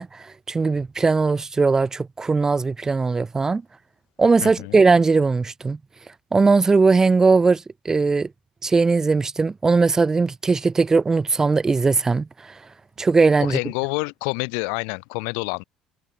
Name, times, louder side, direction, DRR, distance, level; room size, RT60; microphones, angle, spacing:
voice 1, 0.0-3.6 4.2-5.8 6.3-8.3 8.6-12.5 13.0-13.6, right 4 dB, 25° right, 0.8 m, -19 dB
voice 2, 4.4-4.8 13.4-15.6, left 40 dB or more, 85° left, 1.3 m, -28 dB
supercardioid pair, 90°, 2 cm